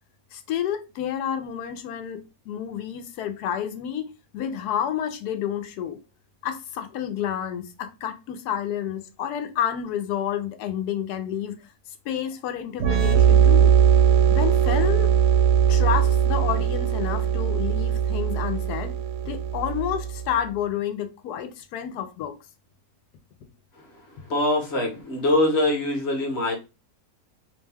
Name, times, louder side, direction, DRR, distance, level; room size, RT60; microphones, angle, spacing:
voice 1, 0.3-6.0 6.4-11.7 12.0-13.7 14.3-15.1 15.7-18.9 19.2-22.3, left 9 dB, 80° left, 1.1 m, -30 dB
sound 1, 12.8-20.3, right 8 dB, 85° right, 1.1 m, -20 dB
voice 2, 24.3-26.5, left 1 dB, 50° left, 1.1 m, -23 dB
2.9 x 2.2 x 3.2 m
omnidirectional pair, 1.7 m